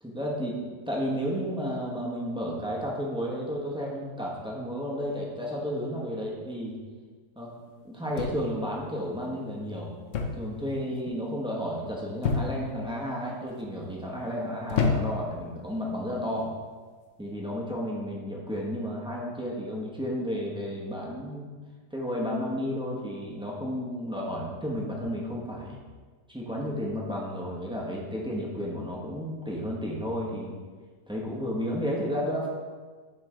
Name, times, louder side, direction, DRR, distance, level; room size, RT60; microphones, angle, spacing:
voice 1, 0.0-6.8 7.3-7.5 7.8-9.9 10.4-16.5 17.2-21.5 21.9-25.8 26.3-30.6 31.1-32.5, equal, 5° right, -4 dB, 0.5 m, -32 dB
sound 1, 8.2-8.7 10.1-10.5 10.8-11.2 12.2-12.8 13.5-13.9 14.7-15.3 16.3-16.6, left 5 dB, 60° left, 0.8 m, -28 dB
9.2 x 3.2 x 3.7 m, 1.5 s
omnidirectional pair, 1.8 m